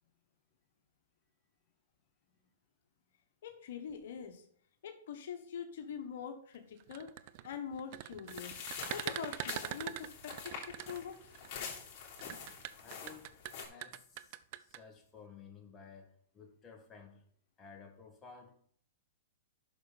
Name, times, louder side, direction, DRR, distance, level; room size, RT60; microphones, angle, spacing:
voice 1, 3.4-4.4 4.8-7.1 7.4-11.3, left 7 dB, 65° left, 5 dB, 1.4 m, -44 dB
sound 1, 6.8-11.5 12.2-14.8, right 15 dB, 50° right, 0.5 m, -42 dB
sound 2, 8.3-13.7, left 6 dB, 40° left, 3.4 m, -46 dB
voice 2, 12.8-13.3 13.7-17.3 17.6-18.6, left 5 dB, 20° left, 1 dB, 1.9 m, -55 dB
10.5 x 6.5 x 4.2 m, 0.62 s
hypercardioid pair, 125°, 0 cm